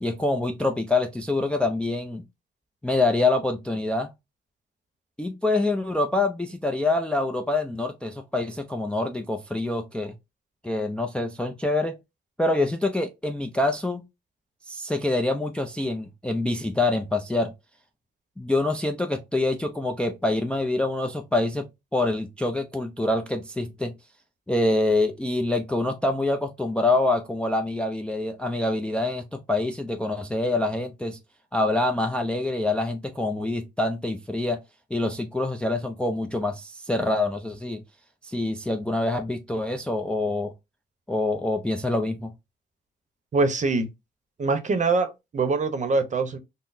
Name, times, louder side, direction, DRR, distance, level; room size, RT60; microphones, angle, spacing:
voice 1, 0.0-2.2 2.8-4.1 5.2-10.1 10.6-12.0 12.4-14.0 14.7-17.5 18.4-23.9 24.5-31.2 31.5-34.6 34.9-37.8 38.2-40.5 41.1-42.3, left 2 dB, 5° left, 0.4 m, -26 dB
voice 2, 43.3-43.9 44.4-46.4, right 3 dB, 40° right, 0.7 m, -24 dB
3.7 x 2.0 x 2.5 m
cardioid pair, 90°, 20 cm